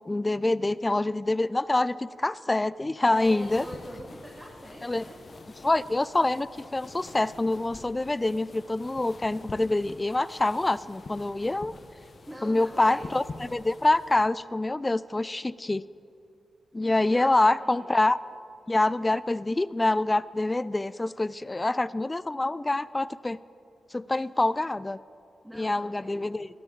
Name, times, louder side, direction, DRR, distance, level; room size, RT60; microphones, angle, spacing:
voice 1, 0.1-3.7 4.8-5.0 5.6-6.5 6.7-11.7 12.4-15.9 16.7-18.2 18.7-23.4 23.9-25.0 25.5-26.5, left 2 dB, 25° left, 19 dB, 0.3 m, -26 dB
sound 1, 3.1-14.3, left 3 dB, 55° left, 1.0 m, -47 dB
voice 2, 3.1-5.2 12.3-13.2 17.1-17.9 25.4-26.3, equal, 5° right, -2 dB, 2.3 m, -44 dB
17.5 x 13.0 x 3.9 m, 2.6 s
supercardioid pair, 50°, 0 cm